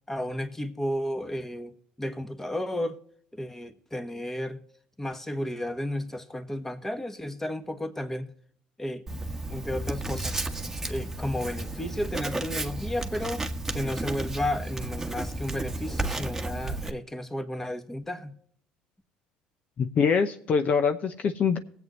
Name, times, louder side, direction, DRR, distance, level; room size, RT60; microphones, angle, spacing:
voice 1, 0.1-3.0 3.3-4.6 5.0-8.3 8.8-9.0 9.5-10.4 10.9-13.4 13.7-18.4, left 1 dB, 10° left, 1.4 m, -33 dB
Writing, 9.1-16.9, right 2 dB, 10° right, 1.3 m, -33 dB
voice 2, 19.8-21.6, left 6 dB, 50° left, 0.8 m, -24 dB
19.0 x 8.1 x 3.1 m
supercardioid pair, 75°, 3 cm